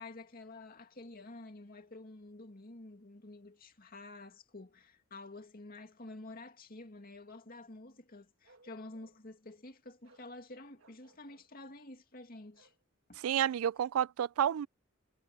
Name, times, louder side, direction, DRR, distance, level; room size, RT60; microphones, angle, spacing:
voice 1, 0.0-12.7 13.1-13.3, left 2 dB, 45° left, 2.4 m, -50 dB
Bark, 8.4-9.3 10.0-10.3 10.8-11.5 12.5-12.8, right 2 dB, 65° right, 1.9 m, -65 dB
voice 2, 13.2-14.7, right 9 dB, 85° right, 0.3 m, -30 dB
head